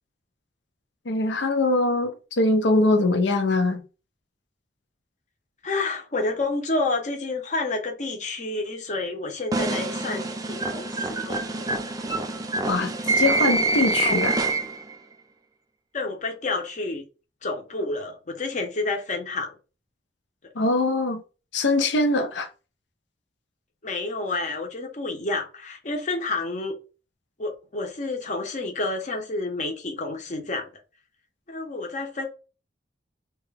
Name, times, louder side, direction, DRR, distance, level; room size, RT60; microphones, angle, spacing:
voice 1, 1.1-3.8 12.7-14.5 20.5-21.2 21.5-22.5, left 2 dB, 80° left, 0.6 m, -22 dB
voice 2, 5.6-11.7 12.6-12.9 14.0-14.2 15.9-17.0 17.4-19.6 23.8-26.7 27.4-30.7 31.5-32.3, left 3 dB, 45° left, 0.8 m, -29 dB
sound 1, 9.5-14.9, right 3 dB, 20° right, 0.4 m, -26 dB
3.0 x 2.3 x 3.2 m
head